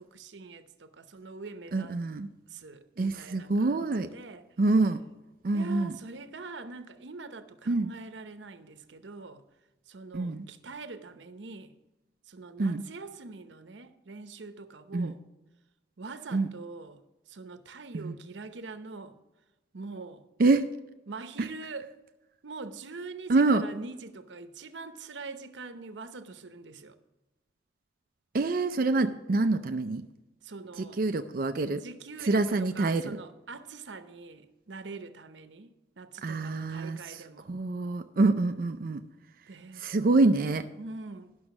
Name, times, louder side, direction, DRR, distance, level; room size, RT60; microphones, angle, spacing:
voice 1, 0.0-2.0 2.5-4.4 5.5-9.4 9.9-11.8 12.3-15.2 16.0-19.2 19.7-20.3 21.1-21.9 22.4-27.0 30.4-31.0 31.7-37.5 39.5-39.8 40.8-41.5, right 3 dB, 80° right, 0.8 m, -44 dB
voice 2, 1.7-2.3 3.0-4.1 4.6-5.0 5.4-5.9 7.7-7.9 10.1-10.5 12.6-12.8 14.9-15.1 16.3-16.5 17.9-18.2 20.4-20.7 23.3-23.6 28.3-30.0 31.0-31.8 32.3-33.2 36.2-37.2 37.5-39.0 39.8-40.7, right 3 dB, 50° right, 0.4 m, -26 dB
11.5 x 6.3 x 6.0 m
head